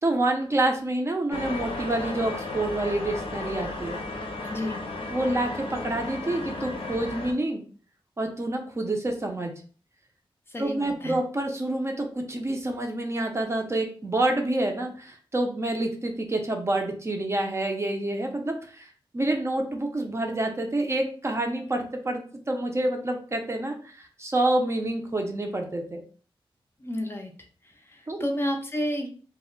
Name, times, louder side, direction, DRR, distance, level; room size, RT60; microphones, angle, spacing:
voice 1, 0.0-4.0 5.1-7.6 8.2-9.5 10.6-22.2 22.5-26.0 28.1-28.3, right 1 dB, 30° right, 3 dB, 0.5 m, -28 dB
sound 1, 1.3-7.3, left 2 dB, 80° left, 0.5 m, -34 dB
voice 2, 4.5-4.8 10.5-11.2 26.8-27.3 27.9-29.1, equal, 25° left, 3 dB, 0.4 m, -31 dB
2.1 x 2.0 x 3.6 m, 0.42 s
wide cardioid pair, 115°, 9 cm